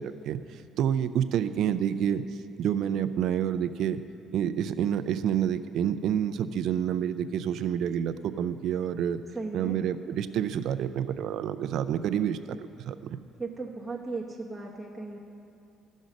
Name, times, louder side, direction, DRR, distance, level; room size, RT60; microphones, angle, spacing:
voice 1, 0.0-2.2 2.6-4.0 4.3-9.2 9.5-12.6 12.9-13.0, right 9 dB, 70° right, 12 dB, 0.4 m, -28 dB
voice 2, 9.3-9.8 13.4-15.2, right 3 dB, 10° right, -3 dB, 1.0 m, -36 dB
14.5 x 6.3 x 5.2 m, 2.5 s
cardioid pair, 100°, 0 cm